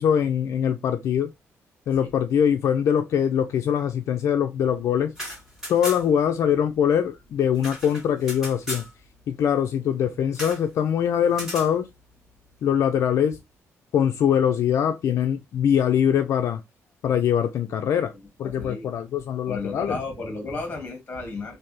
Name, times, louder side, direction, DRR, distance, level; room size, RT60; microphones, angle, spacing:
voice 1, 0.0-1.3 1.9-5.1 5.7-8.9 9.3-11.9 12.6-13.4 13.9-16.6 17.0-18.1 18.4-20.0, left 8 dB, 65° left, 0.3 m, -23 dB
sound 1, 5.0-6.3 6.5-6.6 6.9-8.9 10.3-10.7 11.3-11.7, equal, 10° right, 2.1 m, -36 dB
voice 2, 18.1-19.0 19.5-21.6, left 3 dB, 25° left, 1.5 m, -33 dB
3.3 x 2.6 x 3.0 m
cardioid pair, 155°, 5 cm